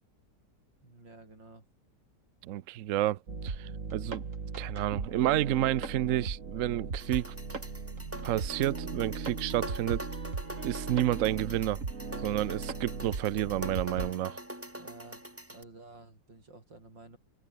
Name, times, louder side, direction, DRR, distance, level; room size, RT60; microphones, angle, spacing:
voice 1, 0.8-1.6 14.7-17.2, right 2 dB, 90° right, 7.3 m, -52 dB
voice 2, 2.4-3.2 3.4-4.2 4.6-7.3 8.2-10.1 10.6-11.8 12.2-14.4, right 13 dB, 70° right, 0.8 m, -30 dB
sound 1, 3.3-14.1, right 4 dB, 45° right, 2.9 m, -38 dB
sound 2, 7.0-15.6, equal, 5° right, 4.5 m, -44 dB
omnidirectional pair, 1.9 m